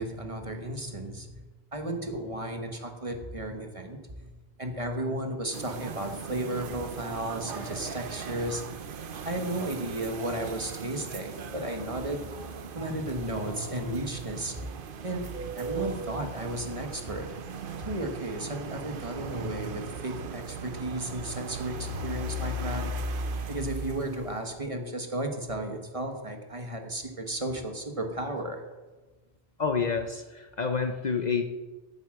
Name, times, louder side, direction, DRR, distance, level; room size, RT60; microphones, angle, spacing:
voice 1, 0.0-1.4 1.7-4.3 4.6-8.7 9.2-12.3 12.7-14.6 15.0-15.3 15.5-17.4 17.8-22.9 23.5-28.6, right 1 dB, 30° right, 4 dB, 1.4 m, -34 dB
sound 1, 5.5-24.6, right 3 dB, 60° right, 0.9 m, -38 dB
voice 2, 29.6-31.4, left 5 dB, 45° left, 6 dB, 0.8 m, -28 dB
9.6 x 8.1 x 7.6 m, 1.2 s
omnidirectional pair, 1.1 m